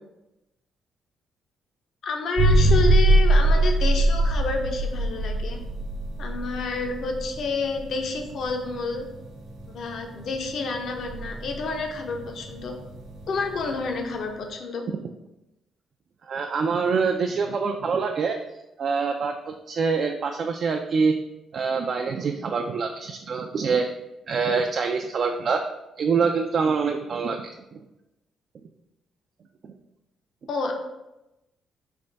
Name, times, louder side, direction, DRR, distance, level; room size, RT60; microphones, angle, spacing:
voice 1, 2.0-5.6 6.2-9.1 9.7-12.7 13.3-14.8 30.5-30.7, left 4 dB, 65° left, 3 dB, 0.6 m, -29 dB
sound 1, 2.4-14.0, right 1 dB, 80° right, 1.0 m, -23 dB
voice 2, 16.3-18.4 18.8-21.2 21.5-23.9 24.3-25.6 26.0-27.5, right 5 dB, 55° right, 4 dB, 0.3 m, -25 dB
3.4 x 3.3 x 3.9 m, 0.95 s
cardioid pair, 90°, 0 cm